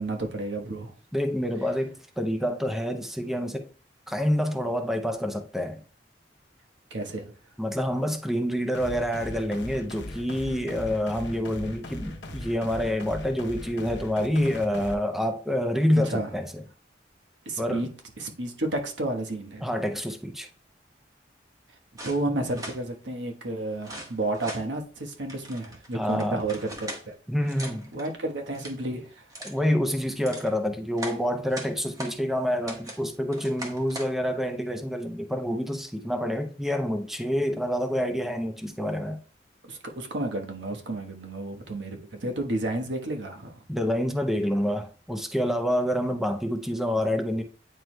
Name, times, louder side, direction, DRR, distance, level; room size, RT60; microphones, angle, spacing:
voice 1, 0.0-0.9 6.9-7.3 15.9-16.3 17.4-17.9 18.2-19.6 22.0-27.2 27.9-29.3 39.7-43.6, right 2 dB, 90° right, 1.2 m, -31 dB
voice 2, 1.1-3.7 4.1-5.8 7.6-16.6 17.6-17.9 19.6-20.5 25.9-26.4 27.3-27.9 29.4-39.2 43.7-47.4, equal, ahead, 0.6 m, -27 dB
sound 1, 8.7-14.9, left 1 dB, 70° left, 0.8 m, -39 dB
sound 2, 22.0-22.8 23.8-24.6 25.3-27.0 27.4-28.1 28.5-28.8 29.3-29.6 30.0-30.5 31.0-32.2 32.7-33.0 33.3-34.1, right 1 dB, 20° right, 1.2 m, -40 dB
9.1 x 4.6 x 2.2 m
head